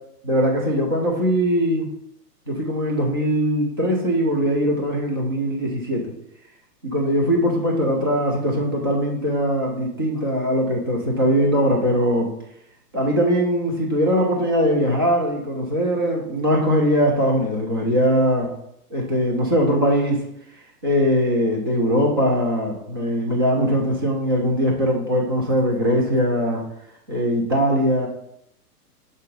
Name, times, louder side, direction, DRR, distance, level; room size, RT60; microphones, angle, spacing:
voice 1, 0.2-1.9 2.5-6.1 6.8-12.3 12.9-18.5 18.9-20.2 20.8-26.6 27.1-28.1, equal, 15° right, -1 dB, 0.3 m, -21 dB
6.5 x 3.7 x 3.9 m, 0.77 s
hypercardioid pair, 135°, 48 cm